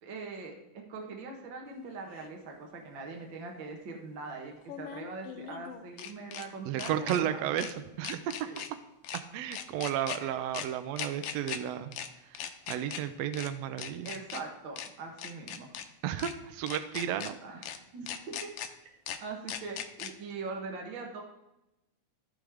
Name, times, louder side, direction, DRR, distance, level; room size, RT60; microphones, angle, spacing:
voice 1, 0.0-7.4 8.5-8.6 10.2-10.3 14.0-15.7 17.4-17.7 17.9-18.5 19.2-21.2, right 4 dB, 55° right, 1 dB, 1.4 m, -42 dB
sound 1, 2.2-2.3 4.6-6.5 6.8-7.2 7.6-7.7 8.0-8.7 9.0-9.2 9.5-10.2 10.5-10.7 11.0-11.6 11.9-12.1 12.3-13.0 13.3-13.5 13.8-14.4 14.8-14.9 15.2-15.8 16.2-16.3 16.7-17.3 17.6-17.8 18.1-18.7 19.1-19.2 19.5-20.1, left 9 dB, 80° left, 1.4 m, -39 dB
voice 2, 6.6-8.3 9.3-11.9 12.2-12.4 12.7-14.1 16.0-17.4, right 10 dB, 90° right, 10 dB, 1.5 m, -33 dB
14.0 x 5.0 x 3.5 m, 0.93 s
omnidirectional pair, 3.5 m